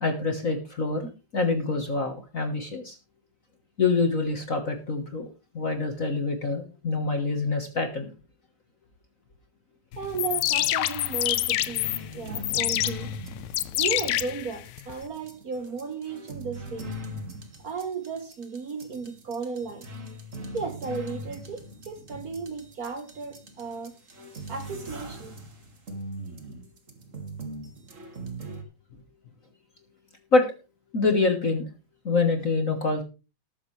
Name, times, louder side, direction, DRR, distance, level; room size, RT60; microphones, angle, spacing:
voice 1, 0.0-3.0 3.8-5.3 5.5-8.1 30.3-30.5 30.9-31.7 32.0-33.0, left 3 dB, 45° left, 1.1 m, -26 dB
sound 1, 10.0-15.0, left 15 dB, 80° left, 2.0 m, -27 dB
voice 2, 10.0-13.1 13.7-16.9 17.6-19.9 20.5-23.9 24.5-25.4, right 5 dB, 70° right, 0.8 m, -35 dB
sound 2, 11.5-28.6, right 1 dB, 30° right, 2.0 m, -41 dB
19.5 x 7.3 x 3.3 m
omnidirectional pair, 3.4 m